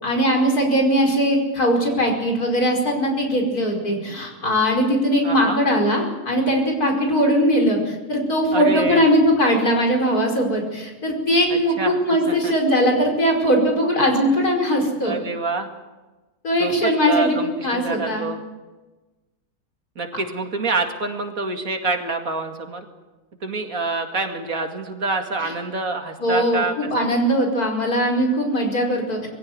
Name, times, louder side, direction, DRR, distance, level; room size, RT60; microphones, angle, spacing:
voice 1, 0.0-15.2 16.4-18.3 26.2-29.3, equal, 75° left, 1 dB, 5.6 m, -20 dB
voice 2, 5.2-5.6 8.5-9.1 11.5-12.5 15.0-15.7 16.6-18.4 20.0-22.9 23.4-27.1, right 3 dB, 60° right, 4 dB, 2.7 m, -27 dB
23.0 x 16.0 x 9.6 m, 1.2 s
omnidirectional pair, 1.6 m